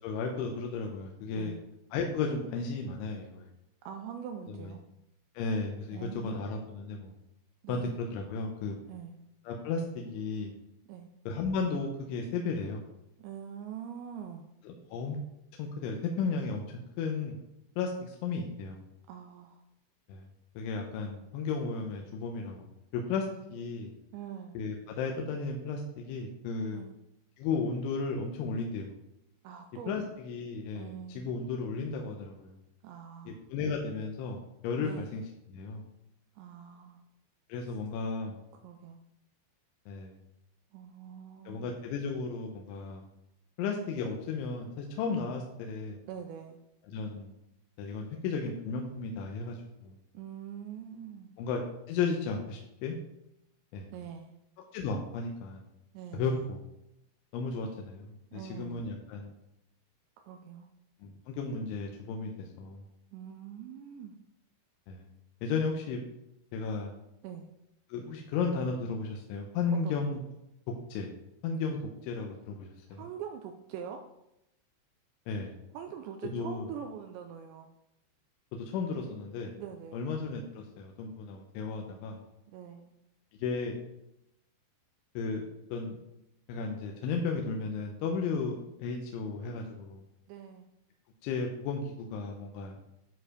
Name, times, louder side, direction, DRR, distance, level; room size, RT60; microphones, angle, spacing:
voice 1, 0.0-1.5 1.9-3.5 4.5-4.7 5.3-7.1 7.7-8.7 9.5-10.5 11.3-12.8 14.7-15.2 15.6-16.7 17.0-17.4 17.8-18.8 20.1-20.3 20.6-22.6 22.9-23.9 24.5-26.8 27.4-28.9 29.9-32.6 33.5-35.2 35.5-35.8 37.5-38.4 39.9-40.2 41.5-43.0 43.6-46.0 46.9-47.3 47.8-49.9 51.4-51.6 51.9-53.0 53.7-53.9 54.7-55.6 56.1-56.6 57.3-59.3 61.0-62.8 64.9-65.1 65.4-66.0 66.5-66.9 67.9-70.2 70.9-71.1 71.4-73.1 75.3-75.5 76.3-76.7 78.5-79.5 79.9-82.2 83.4-83.8 85.2-85.4 85.7-86.0 86.5-90.0 91.2-92.8, left 4 dB, 80° left, 2 dB, 3.1 m, -34 dB
voice 2, 3.8-4.8 5.9-6.5 7.6-7.9 8.9-9.2 10.9-11.1 13.2-14.4 19.1-19.6 24.1-24.6 26.7-27.0 29.4-30.0 30.8-31.4 32.8-33.4 34.8-35.1 36.4-37.0 38.6-39.0 40.7-41.7 46.1-46.6 50.1-51.3 53.9-54.3 55.9-56.5 58.3-58.8 60.3-60.7 63.1-64.2 67.2-67.5 69.8-70.0 72.9-74.0 75.7-77.7 79.6-80.1 82.5-82.9 90.3-90.7, right 8 dB, 85° right, 5 dB, 2.6 m, -43 dB
10.0 x 4.8 x 4.9 m, 0.86 s
omnidirectional pair, 5.6 m